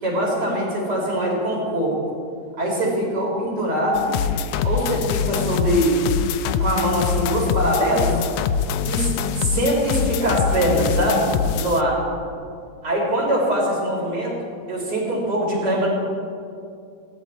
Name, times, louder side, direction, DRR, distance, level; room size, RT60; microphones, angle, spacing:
voice 1, 0.0-2.0 2.6-4.1 4.6-6.0 6.6-8.2 8.8-11.3 11.5-12.0 12.8-14.3 14.7-15.9, equal, 30° right, -5 dB, 5.3 m, -22 dB
sound 1, 3.9-11.8, left 7 dB, 75° left, 1.8 m, -24 dB
19.5 x 15.5 x 4.4 m, 2.4 s
omnidirectional pair, 3.5 m